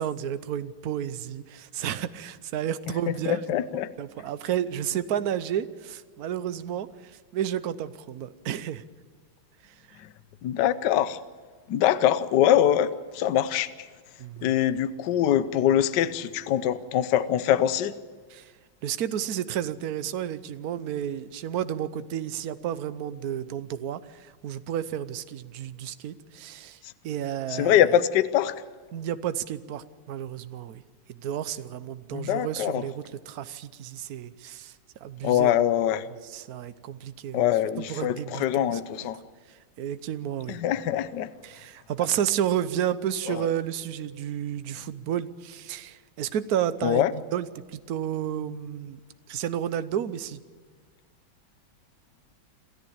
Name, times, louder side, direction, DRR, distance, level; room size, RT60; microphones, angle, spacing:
voice 1, 0.0-3.4 4.0-8.8 14.2-14.5 18.3-18.5 18.8-26.8 27.0-27.8 28.9-30.8 31.1-34.7 35.0-35.5 36.2-37.4 37.9-38.8 39.8-40.6 41.4-49.0 49.3-50.4, right 10 dB, 60° right, 1.1 m, -31 dB
voice 2, 3.3-3.9 10.4-11.2 11.7-13.7 14.4-17.9 27.5-28.5 32.1-32.8 35.2-36.0 37.3-39.2 40.5-41.3 43.3-43.5 46.8-47.1, left 11 dB, 65° left, 1.3 m, -23 dB
27.5 x 13.5 x 8.7 m
omnidirectional pair, 2.2 m